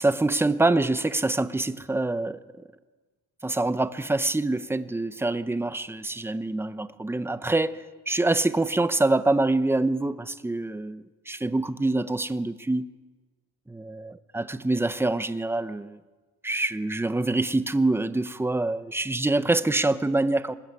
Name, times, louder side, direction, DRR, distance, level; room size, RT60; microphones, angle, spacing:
voice 1, 0.0-2.4 3.4-12.8 13.7-16.0 16.4-20.6, right 2 dB, 5° right, 0.9 m, -25 dB
26.0 x 21.0 x 9.7 m
cardioid pair, 130°, 39 cm